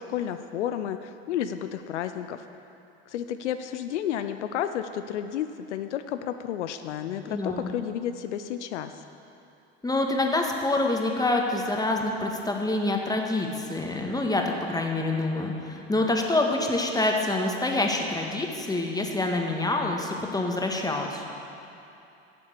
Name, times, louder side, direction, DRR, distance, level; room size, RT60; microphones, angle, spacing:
voice 1, 0.0-2.4 3.1-8.9, left 10 dB, 85° left, 9 dB, 0.5 m, -31 dB
voice 2, 7.3-7.6 9.8-21.2, left 2 dB, 10° left, 1 dB, 1.7 m, -26 dB
10.5 x 7.1 x 8.3 m, 2.7 s
hypercardioid pair, 65°, 34 cm